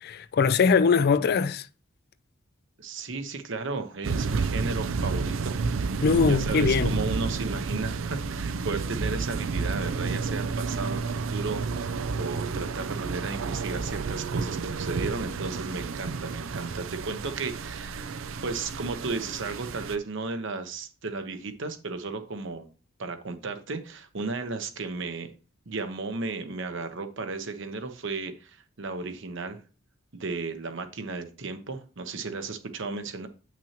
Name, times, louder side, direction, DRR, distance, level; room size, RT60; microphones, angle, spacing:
voice 1, 0.0-1.6 6.0-6.9, left 5 dB, 50° left, 0.4 m, -22 dB
voice 2, 2.8-5.6 6.3-22.7 23.0-25.3 25.7-29.6 30.1-33.3, right 3 dB, 65° right, 0.9 m, -34 dB
sound 1, 4.0-20.0, right 4 dB, 85° right, 0.5 m, -31 dB
8.4 x 6.0 x 2.9 m
head